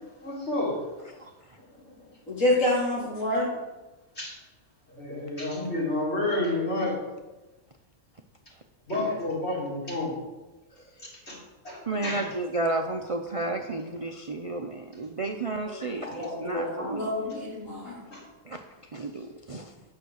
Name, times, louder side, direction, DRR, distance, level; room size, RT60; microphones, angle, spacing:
voice 1, 0.2-1.0 1.6-2.1 2.5-2.6 4.2-4.4 4.9-6.9 8.9-10.1 11.0-11.4 11.6-12.3 15.7-16.1 18.1-18.2, left 2 dB, 55° left, -5 dB, 3.7 m, -31 dB
voice 2, 2.3-3.5 16.0-17.9, left 1 dB, 75° left, -5 dB, 3.6 m, -27 dB
voice 3, 11.9-17.1 18.5-18.6 18.9-19.7, right 2 dB, 40° right, 4 dB, 0.5 m, -32 dB
9.5 x 6.5 x 6.4 m, 1.1 s
omnidirectional pair, 1.3 m